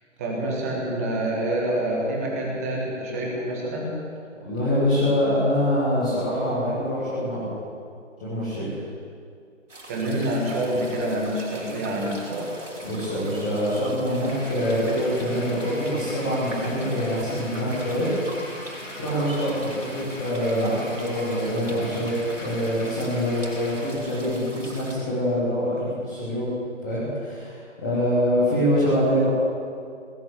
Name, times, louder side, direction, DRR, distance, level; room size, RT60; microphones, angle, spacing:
voice 1, 0.2-3.9 9.9-12.5, right 1 dB, 10° right, -2 dB, 1.7 m, -27 dB
voice 2, 4.4-7.5 8.2-8.8 12.8-18.5 19.0-22.1 22.4-26.5 26.8-29.3, equal, 5° left, -11 dB, 1.0 m, -25 dB
sound 1, 9.7-24.9, right 1 dB, 65° right, 4.5 m, -42 dB
sound 2, 14.3-23.9, left 1 dB, 75° left, 3.2 m, -39 dB
19.0 x 9.1 x 8.2 m, 2.3 s
figure-of-eight pair, 155°, 39 cm